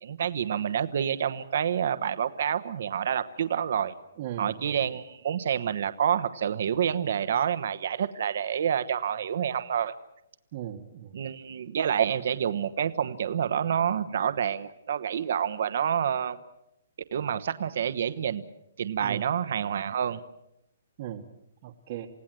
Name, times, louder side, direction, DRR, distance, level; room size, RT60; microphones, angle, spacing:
voice 1, 0.0-3.9 4.4-9.9 11.1-16.4 17.1-18.4 18.8-20.2, right 8 dB, 50° right, 12 dB, 1.1 m, -28 dB
voice 2, 4.2-4.8 10.5-11.2 19.0-19.3 21.0-21.3 21.6-22.1, right 11 dB, 30° right, -1 dB, 1.4 m, -38 dB
28.5 x 17.5 x 7.7 m, 0.82 s
hypercardioid pair, 175°, 0 cm